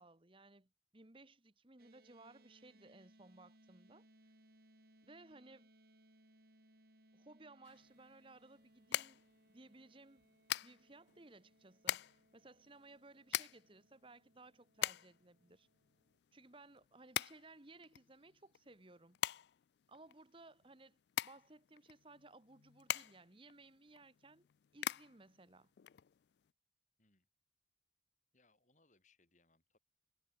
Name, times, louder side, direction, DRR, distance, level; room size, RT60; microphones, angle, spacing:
voice 1, 0.0-4.1 5.0-5.7 7.1-9.2 9.5-10.2 10.6-15.7 16.3-19.2 19.9-24.5 24.7-25.7, right 2 dB, 25° right, 1.3 m, -60 dB
sound 1, 1.8-16.2, right 1 dB, 55° right, 5.1 m, -69 dB
sound 2, 7.6-26.5, left 12 dB, 60° left, 0.3 m, -44 dB
voice 2, 28.3-29.8, left 3 dB, 40° left, 4.4 m, -74 dB
head